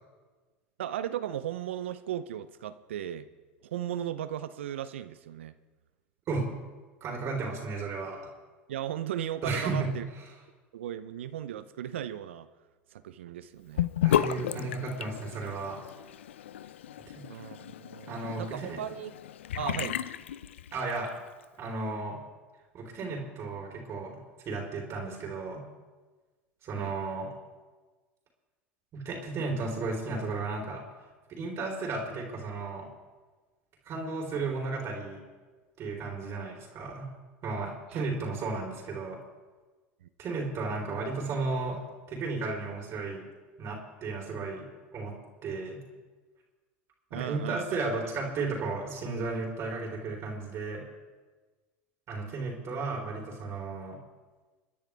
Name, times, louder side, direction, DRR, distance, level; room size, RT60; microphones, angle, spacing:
voice 1, 0.8-3.3 3.6-5.5 8.7-10.0 10.7-12.5 12.9-13.9 17.3-19.1 19.6-20.0 26.7-26.9 37.9-38.1 40.0-40.1 47.1-47.8, right 11 dB, 85° right, 12 dB, 0.7 m, -36 dB
voice 2, 7.0-8.2 9.4-9.9 14.0-15.8 18.1-18.8 20.7-21.1 21.6-22.2 22.7-24.1 24.5-25.6 26.6-27.3 28.9-30.8 31.3-32.9 33.9-35.2 35.8-37.1 37.4-39.2 40.2-41.8 42.1-43.2 43.6-44.7 44.9-45.1 45.4-45.8 47.1-50.8 52.1-54.0, right 3 dB, 45° right, -1 dB, 3.8 m, -34 dB
Sink (filling or washing) / Bathtub (filling or washing), 13.8-21.1, left 11 dB, 85° left, 0.5 m, -33 dB
29.0 x 10.0 x 3.5 m, 1.3 s
hypercardioid pair, 85°, 6 cm